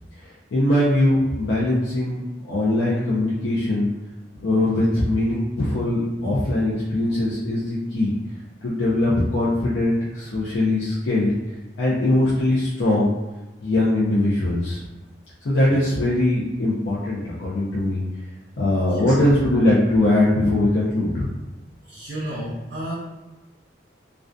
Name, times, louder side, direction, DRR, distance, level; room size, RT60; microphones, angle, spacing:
voice 1, 0.2-3.9 4.3-8.1 8.6-11.3 11.8-13.1 13.6-14.8 15.4-18.0 18.6-21.3, left 1 dB, 75° left, -7 dB, 0.5 m, -21 dB
voice 2, 21.9-22.9, right 1 dB, 70° right, -6 dB, 0.6 m, -32 dB
2.5 x 2.2 x 2.2 m, 1.1 s
head